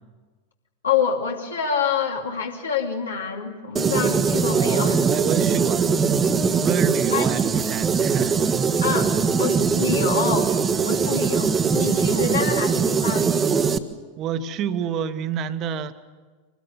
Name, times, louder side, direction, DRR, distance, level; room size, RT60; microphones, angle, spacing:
voice 1, 0.8-5.0 7.1-7.3 8.8-9.1 9.4-10.5 10.8-13.3, left 6 dB, 70° left, 1 dB, 2.9 m, -26 dB
sound 1, 3.8-13.8, right 5 dB, 20° right, 1.3 m, -21 dB
voice 2, 4.5-5.9 6.4-8.4 14.2-15.9, right 8 dB, 35° right, 11 dB, 1.4 m, -28 dB
25.0 x 20.0 x 9.3 m, 1.4 s
figure-of-eight pair, 90°, 0 cm